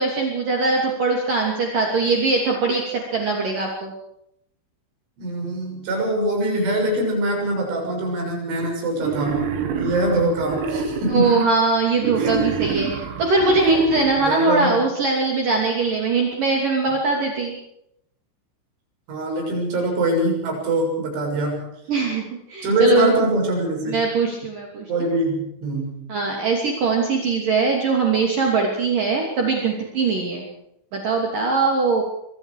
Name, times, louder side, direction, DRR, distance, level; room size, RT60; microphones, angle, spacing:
voice 1, 0.0-2.8 3.1-3.9 11.1-17.6 21.9-22.2 22.5-23.1 23.9-25.1 26.1-30.5 30.9-32.0, right 4 dB, 45° right, 0 dB, 4.1 m, -21 dB
voice 2, 5.2-11.5 12.2-12.4 14.2-14.8 19.1-21.7 22.6-24.0 24.9-26.1, right 1 dB, 70° right, 1 dB, 9.3 m, -23 dB
Wild animals, 9.0-11.5 12.0-14.5, right 6 dB, 90° right, 5.3 m, -27 dB
25.0 x 23.5 x 4.9 m, 0.77 s
omnidirectional pair, 5.8 m